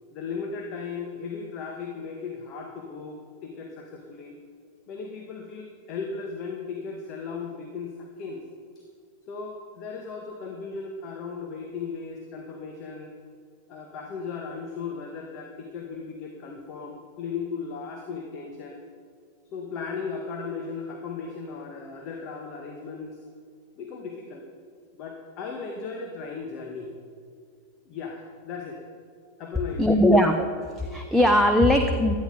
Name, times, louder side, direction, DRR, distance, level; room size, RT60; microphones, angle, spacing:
voice 1, 0.1-4.4 4.9-8.4 9.3-13.1 13.7-18.8 19.5-23.2 23.8-24.5 24.9-27.0 27.8-28.8 29.4-30.0, left 5 dB, 40° left, 2 dB, 1.7 m, -36 dB
voice 2, 29.8-30.5 30.8-32.2, left 1 dB, ahead, 4 dB, 0.9 m, -19 dB
17.0 x 12.0 x 4.0 m, 2.2 s
figure-of-eight pair, 90°, 0 cm